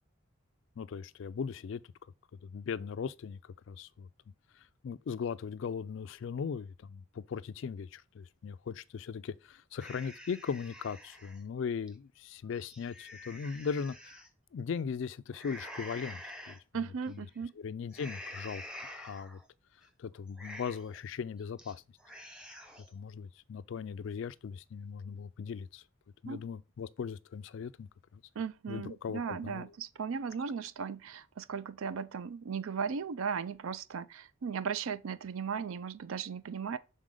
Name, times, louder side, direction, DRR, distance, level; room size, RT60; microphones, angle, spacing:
voice 1, 0.8-1.8 2.4-4.1 4.8-14.2 14.5-16.6 17.1-17.2 17.6-18.6 19.0-19.4 20.0-21.8 22.9-25.8 26.2-28.2 28.7-29.7, left 6 dB, 60° left, 0.3 m, -38 dB
sound 1, 9.8-11.4 11.9-12.0 12.5-14.3 15.3-16.6 17.1-17.4 17.9-19.4 19.8-19.9 20.3-21.0 21.4-21.7 22.0-22.9, left 1 dB, 5° right, 0.7 m, -47 dB
voice 2, 16.7-17.5 26.3-26.4 28.4-36.8, right 6 dB, 75° right, 0.4 m, -37 dB
6.3 x 4.1 x 3.7 m
head